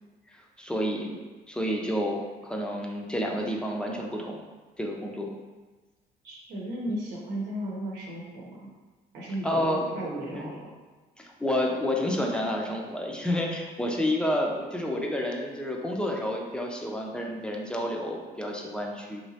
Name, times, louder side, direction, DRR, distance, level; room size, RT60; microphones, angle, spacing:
voice 1, 0.3-1.2 1.5-4.4 4.8-5.3 9.4-9.9 10.3-10.5 11.2-19.2, left 1 dB, 5° left, 0 dB, 0.5 m, -30 dB
voice 2, 6.2-8.7 9.1-10.7, right 1 dB, 80° right, -3 dB, 0.9 m, -35 dB
3.1 x 2.9 x 2.8 m, 1.3 s
cardioid pair, 110°, 17 cm